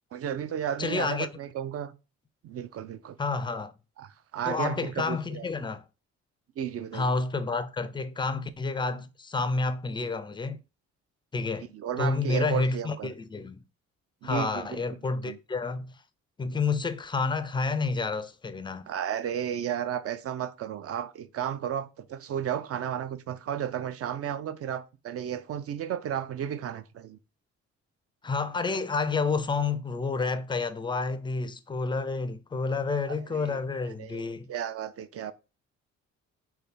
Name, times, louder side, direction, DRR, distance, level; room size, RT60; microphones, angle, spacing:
voice 1, 0.1-1.9 2.4-3.2 4.0-5.5 6.6-7.1 11.7-13.1 14.2-14.8 15.3-15.4 18.9-27.2 33.3-33.6 34.0-35.3, right 9 dB, 50° right, 0.4 m, -33 dB
voice 2, 0.8-1.3 3.2-3.7 4.5-5.8 6.9-10.6 11.3-11.7 12.0-13.6 14.2-15.9 16.4-18.9 28.2-34.5, left 4 dB, 15° left, 0.4 m, -29 dB
3.3 x 2.3 x 4.0 m
cardioid pair, 90°, 30 cm